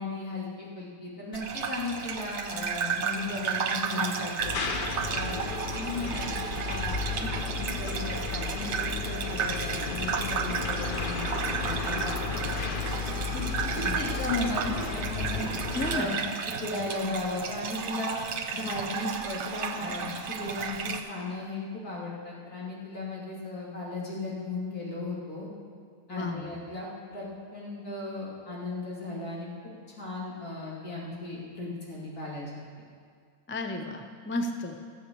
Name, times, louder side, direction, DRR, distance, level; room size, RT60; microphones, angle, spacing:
voice 1, 0.0-4.6 5.1-15.4 15.9-16.1 16.6-18.2 18.5-25.5 26.1-29.5 30.0-32.6, left 2 dB, 75° left, -5 dB, 3.2 m, -36 dB
Gurgling / Bathtub (filling or washing), 1.3-21.0, right 6 dB, 55° right, 1.0 m, -33 dB
sound 1, 4.4-16.0, left 4 dB, 45° left, 0.8 m, -33 dB
voice 2, 15.7-16.2 26.1-26.6 33.5-34.7, left 2 dB, 20° left, 6 dB, 0.3 m, -33 dB
14.0 x 7.8 x 6.9 m, 2.1 s
omnidirectional pair, 1.6 m